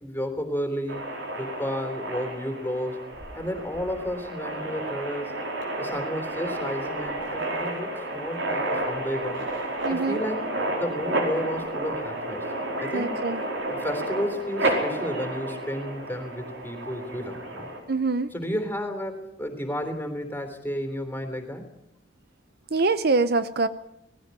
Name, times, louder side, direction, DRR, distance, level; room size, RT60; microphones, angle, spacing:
voice 1, 0.0-1.0 1.4-3.0 3.3-5.4 5.8-9.4 9.9-12.5 12.8-13.2 13.7-17.7 18.3-21.7, equal, 10° left, 7 dB, 3.4 m, -32 dB
sound 1, 0.9-17.8, right 1 dB, 85° right, 5.0 m, -31 dB
voice 2, 9.8-10.2 12.9-13.4 17.9-18.3 22.7-23.7, right 3 dB, 55° right, 13 dB, 0.8 m, -24 dB
19.0 x 16.0 x 9.7 m, 0.81 s
head